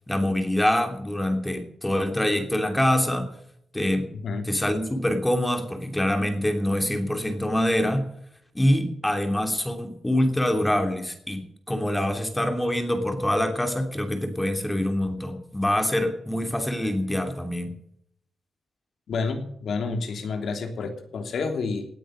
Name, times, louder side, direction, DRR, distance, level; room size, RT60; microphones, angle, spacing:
voice 1, 0.1-3.3 3.7-4.1 4.4-8.1 8.5-17.8, left 1 dB, 10° left, 5 dB, 2.9 m, -25 dB
voice 2, 19.1-21.9, left 4 dB, 70° left, 5 dB, 3.1 m, -29 dB
18.0 x 9.0 x 6.6 m, 0.70 s
wide cardioid pair, 135°, 0 cm